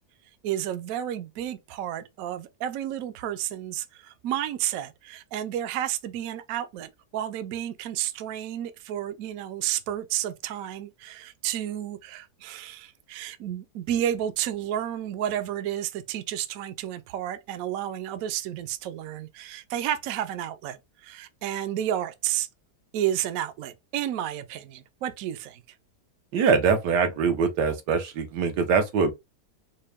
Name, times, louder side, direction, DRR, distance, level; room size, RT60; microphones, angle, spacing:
voice 1, 0.4-22.5 22.9-25.8, right 11 dB, 70° right, 0.9 m, -31 dB
voice 2, 26.3-29.1, right 5 dB, 90° right, 1.4 m, -23 dB
4.4 x 2.1 x 3.4 m
omnidirectional pair, 1.7 m